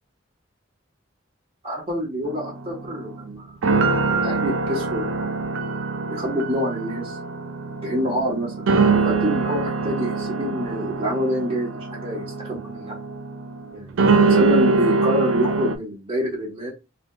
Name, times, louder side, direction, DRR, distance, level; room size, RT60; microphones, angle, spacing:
voice 1, 1.6-3.7 4.1-5.4 6.1-7.2 7.8-13.0 13.7-16.7, equal, 30° right, -3 dB, 1.1 m, -27 dB
sound 1, 2.3-15.8, right 4 dB, 70° right, 0.4 m, -23 dB
3.4 x 2.7 x 2.3 m, 0.25 s
head